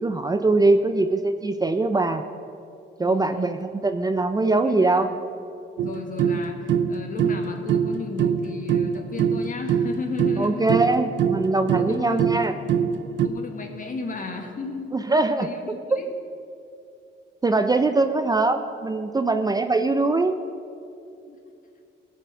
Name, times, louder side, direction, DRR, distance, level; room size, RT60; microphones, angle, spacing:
voice 1, 0.0-2.2 3.0-5.1 10.4-12.5 14.9-15.5 15.9-16.0 17.4-20.4, right 3 dB, 20° right, 8 dB, 0.5 m, -22 dB
voice 2, 3.0-3.6 4.6-5.1 5.8-10.9 11.7-12.2 13.2-14.9 15.4-16.1 21.3-21.4, left 4 dB, 40° left, 4 dB, 1.7 m, -35 dB
sound 1, 5.8-13.3, right 7 dB, 70° right, 0.7 m, -24 dB
16.5 x 5.8 x 6.2 m, 2.5 s
cardioid pair, 90°, 20 cm